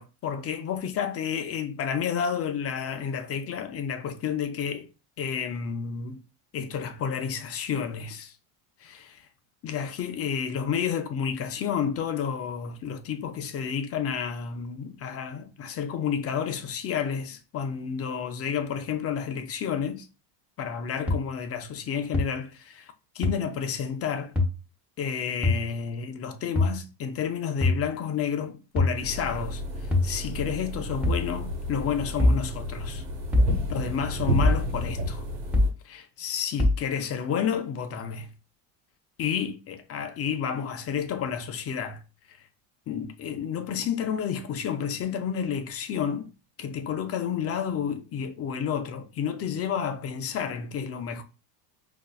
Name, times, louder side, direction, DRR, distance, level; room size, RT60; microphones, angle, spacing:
voice 1, 0.0-4.9 5.2-6.2 6.5-8.3 8.8-9.3 9.6-20.1 20.6-24.3 25.0-33.0 33.7-35.2 35.8-38.3 39.2-42.0 42.3-42.5 42.9-46.3 46.6-51.2, left 7 dB, 30° left, 0.4 m, -30 dB
sound 1, 21.1-21.2 22.1-22.2 23.2-23.3 24.4-24.5 25.4-25.6 26.6-26.8 27.6-27.8 28.8-29.0 29.9-30.1 31.0-31.3 32.2-32.4 33.3-33.5 34.4-34.6 35.5-35.8 36.6-36.8, left 2 dB, 5° right, 1.0 m, -22 dB
sound 2, 29.0-35.7, equal, 90° right, 1.3 m, -31 dB
5.2 x 2.5 x 2.3 m
supercardioid pair, 110°, 47 cm